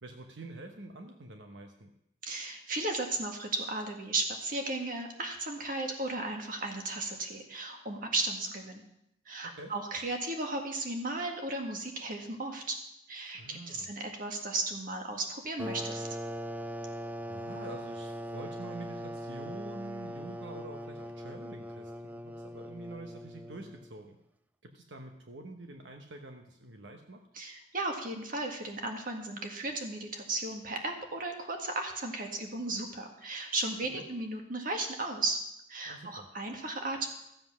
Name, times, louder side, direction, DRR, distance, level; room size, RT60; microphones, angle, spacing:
voice 1, 0.0-1.9 9.4-9.7 13.3-13.9 17.2-24.2 24.6-27.2 33.9-34.0 35.8-36.3, right 2 dB, 80° right, 4 dB, 1.0 m, -46 dB
voice 2, 2.2-8.8 9.3-12.8 13.1-16.1 27.3-35.4 35.7-37.1, right 2 dB, 50° right, 3 dB, 1.9 m, -35 dB
sound 1, 15.6-24.0, equal, 10° right, 0.4 m, -40 dB
14.5 x 7.7 x 6.1 m, 0.81 s
head